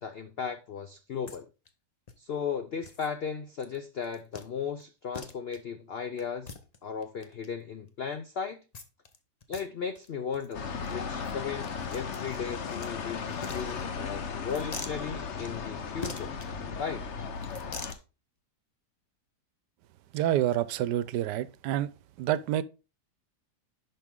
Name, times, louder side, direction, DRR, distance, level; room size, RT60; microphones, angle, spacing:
voice 1, 0.0-1.5 2.2-6.5 6.8-8.6 9.5-16.3 16.8-17.1, left 6 dB, 75° left, 0.5 m, -36 dB
sound 1, 1.3-1.4 1.7-1.8 2.1-2.2 2.8-3.1 3.6-3.8 4.0-4.5 4.8-4.9 5.1-5.6 6.2-7.5 8.7-9.2 9.4-9.6 10.0-10.1 10.3-10.5 10.8-10.9 11.2-12.9 13.3-14.1 14.5-15.0 16.0-16.5 17.4-18.0, left 3 dB, 30° left, 0.8 m, -43 dB
sound 2, 10.5-17.9, left 5 dB, 50° left, 1.1 m, -36 dB
voice 2, 20.1-21.9 22.2-22.6, right 12 dB, 80° right, 1.2 m, -28 dB
11.0 x 5.4 x 3.7 m
omnidirectional pair, 1.8 m